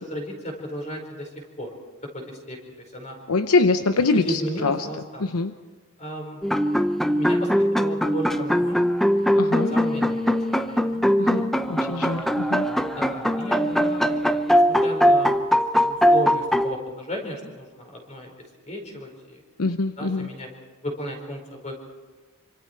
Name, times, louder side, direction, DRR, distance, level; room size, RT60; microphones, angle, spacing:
voice 1, 0.1-1.7 2.1-2.6 2.9-3.2 4.2-5.3 6.0-6.4 7.2-8.8 9.7-11.0 12.8-14.1 14.5-15.4 15.8-18.3 18.6-19.4 20.0-20.5 20.8-21.8, equal, 35° left, 3 dB, 4.9 m, -34 dB
voice 2, 3.3-4.9 5.2-5.5 9.4-9.7 11.2-12.7 19.6-20.3, left 3 dB, 75° left, 8 dB, 0.8 m, -24 dB
sound 1, 6.4-16.7, equal, ahead, 0.7 m, -21 dB
27.0 x 25.5 x 4.6 m, 1.4 s
head